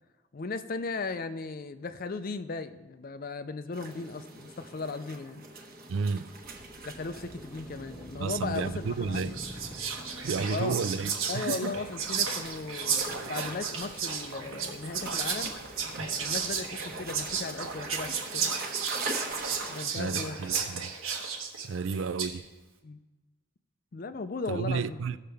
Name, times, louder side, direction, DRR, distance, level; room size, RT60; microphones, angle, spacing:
voice 1, 0.3-5.4 6.8-9.4 10.5-10.7 11.3-15.6 16.2-18.4 19.7-20.4 22.8-23.0 23.9-25.0, left 3 dB, 40° left, 0.4 m, -36 dB
sound 1, 3.7-19.9, right 2 dB, 45° right, 1.2 m, -44 dB
voice 2, 5.9-6.3 8.2-9.4 10.2-11.8 19.9-21.0 21.6-22.5 24.5-25.2, right 5 dB, 60° right, 0.4 m, -32 dB
sound 2, 6.4-18.2, equal, 5° right, 1.4 m, -49 dB
Whispering, 8.5-8.8 9.1-22.4, right 6 dB, 75° right, 1.3 m, -33 dB
16.5 x 6.6 x 3.4 m
head